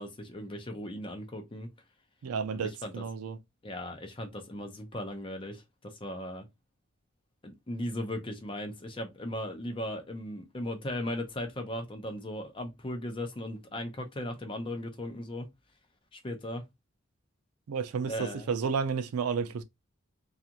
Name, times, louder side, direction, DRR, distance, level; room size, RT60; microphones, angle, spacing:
voice 1, 0.0-1.7 2.6-3.0 3.6-6.5 7.4-15.5 16.1-16.6 18.1-18.5, left 1 dB, 25° left, 0.5 m, -37 dB
voice 2, 2.2-3.4 17.7-19.6, right 6 dB, 85° right, 0.4 m, -31 dB
2.4 x 2.4 x 2.8 m
head